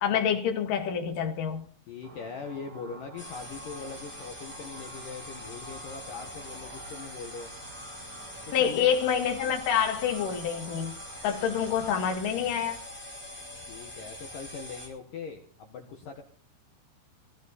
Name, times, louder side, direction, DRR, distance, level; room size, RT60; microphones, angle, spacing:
voice 1, 0.0-1.7 8.5-10.9 11.2-12.8, left 8 dB, 55° left, 2.6 m, -27 dB
voice 2, 1.9-7.5 8.6-9.0 13.7-16.2, left 5 dB, 70° left, 2.0 m, -41 dB
sound 1, 2.0-12.2, right 3 dB, 70° right, 5.3 m, -49 dB
sound 2, 3.2-14.9, left 1 dB, ahead, 3.4 m, -43 dB
19.0 x 12.0 x 4.2 m
omnidirectional pair, 5.9 m